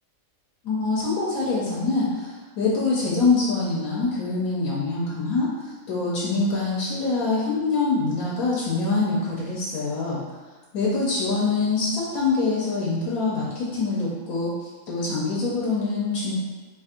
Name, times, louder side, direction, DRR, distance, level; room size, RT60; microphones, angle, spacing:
voice 1, 0.6-10.2 10.7-14.5 14.9-16.3, left 3 dB, 85° left, -6 dB, 1.2 m, -24 dB
2.8 x 2.5 x 4.2 m, 1.3 s
omnidirectional pair, 1.4 m